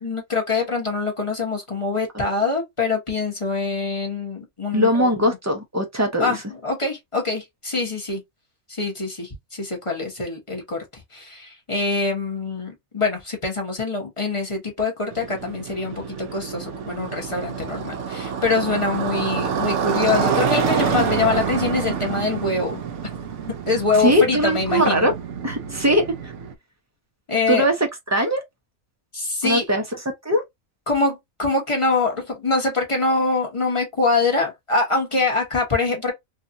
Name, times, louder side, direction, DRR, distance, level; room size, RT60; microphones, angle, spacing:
voice 1, 0.0-5.1 6.2-6.4 6.6-8.2 8.7-22.8 23.7-25.1 27.3-27.6 29.1-29.6 30.9-36.1, left 3 dB, 25° left, 0.9 m, -24 dB
voice 2, 4.7-6.4 24.0-25.1 25.4-26.3 27.5-28.4 29.4-30.4, equal, 25° right, 0.4 m, -21 dB
Motorcycle, 15.1-26.5, right 6 dB, 70° right, 0.8 m, -27 dB
2.8 x 2.4 x 2.5 m
omnidirectional pair, 1.4 m